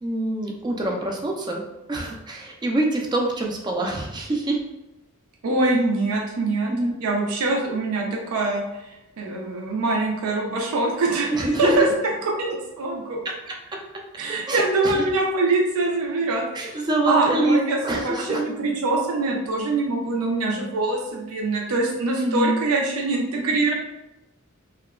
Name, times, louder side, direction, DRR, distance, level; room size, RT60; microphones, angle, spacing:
voice 1, 0.0-1.6 1.9-4.6 6.7-6.9 11.3-11.9 13.2-13.5 14.5-15.0 16.5-18.4 22.2-22.6, right 1 dB, 20° right, 0 dB, 0.3 m, -25 dB
voice 2, 5.4-6.7 7.0-11.9 12.2-13.2 14.2-23.7, right 2 dB, 75° right, 0 dB, 0.5 m, -24 dB
2.8 x 2.2 x 2.3 m, 0.95 s
head